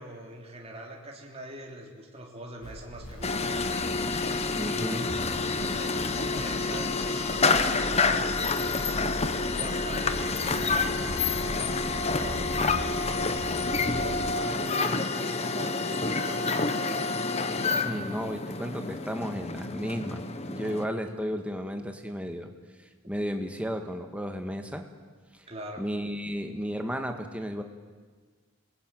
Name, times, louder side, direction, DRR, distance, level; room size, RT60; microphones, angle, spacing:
voice 1, 0.0-3.8 4.6-5.1 5.4-9.1 9.6-13.2 13.6-15.8 16.2-17.3 20.6-21.1 23.0-23.1 25.5-25.8, right 1 dB, 30° right, -1 dB, 3.5 m, -43 dB
sound 1, 2.6-14.3, equal, 80° left, 2.8 m, -40 dB
sound 2, 3.2-20.9, left 4 dB, 30° left, 1.1 m, -28 dB
voice 2, 4.6-5.1 17.8-22.5 23.1-24.9 25.3-25.5 25.8-27.6, equal, 5° right, 5 dB, 1.9 m, -33 dB
28.0 x 21.0 x 9.3 m, 1.5 s
head